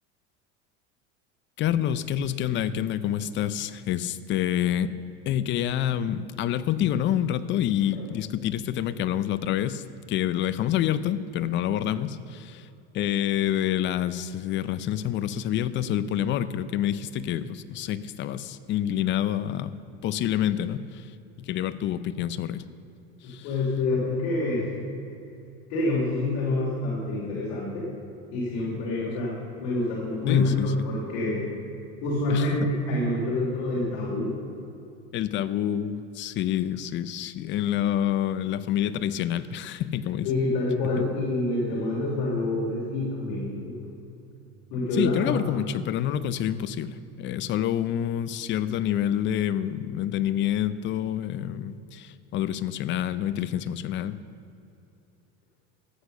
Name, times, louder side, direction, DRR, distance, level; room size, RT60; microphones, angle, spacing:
voice 1, 1.6-4.9 5.3-12.7 12.9-19.7 20.0-22.6 23.2-23.5 30.3-30.7 32.3-32.5 35.1-40.3 44.9-54.2, left 11 dB, 35° left, 14 dB, 0.5 m, -27 dB
voice 2, 23.2-24.7 25.7-27.9 28.3-31.4 32.0-34.3 40.2-43.8 44.7-45.4, left 2 dB, 70° left, -5 dB, 3.0 m, -27 dB
13.0 x 8.2 x 6.6 m, 2.7 s
supercardioid pair, 135°, 32 cm